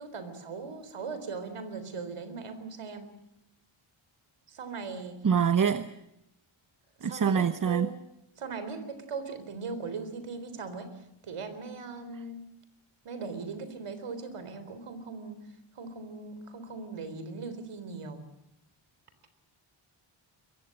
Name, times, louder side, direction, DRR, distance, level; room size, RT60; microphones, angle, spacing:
voice 1, 0.0-3.1 4.5-5.2 7.0-8.0 8.4-10.9 11.2-12.5 13.0-15.4 15.7-18.3, right 4 dB, 85° right, 3.9 m, -39 dB
voice 2, 5.2-5.9 7.0-7.9, right 7 dB, 40° right, 0.9 m, -25 dB
24.0 x 22.0 x 7.7 m
wide cardioid pair, 165°, 50 cm